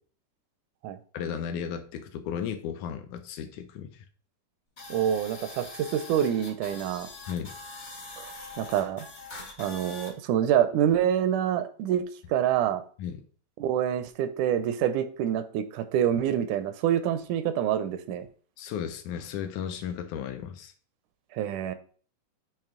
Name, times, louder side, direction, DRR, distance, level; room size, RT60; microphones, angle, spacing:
voice 1, 1.1-4.1 7.3-7.5 13.0-13.2 18.6-20.7, left 8 dB, 80° left, 7 dB, 1.9 m, -35 dB
sound 1, 4.8-10.1, left 3 dB, 55° left, 0.7 m, -43 dB
voice 2, 4.9-7.1 8.2-8.3 8.6-9.1 9.6-12.8 13.6-18.3 21.3-21.7, right 10 dB, 80° right, 11 dB, 1.9 m, -26 dB
8.8 x 2.9 x 3.6 m, 0.43 s
omnidirectional pair, 3.6 m